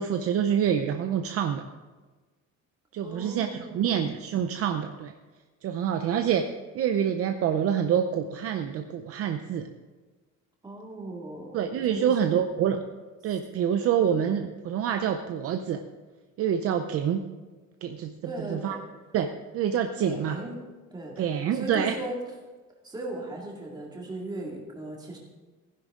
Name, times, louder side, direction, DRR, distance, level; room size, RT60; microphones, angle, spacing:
voice 1, 0.0-1.6 2.9-5.1 5.6-6.4 6.7-9.7 11.5-12.9 13.2-15.8 16.4-17.2 17.8-18.1 18.4-18.8 19.1-20.4 21.2-21.9, right 8 dB, 50° right, 6 dB, 0.6 m, -26 dB
voice 2, 3.0-4.0 10.6-11.6 11.9-12.5 18.2-18.8 20.0-20.6 20.9-22.2 22.8-25.2, right 1 dB, 15° right, -2 dB, 2.2 m, -37 dB
15.5 x 10.5 x 3.7 m, 1.3 s
cardioid pair, 175°, 31 cm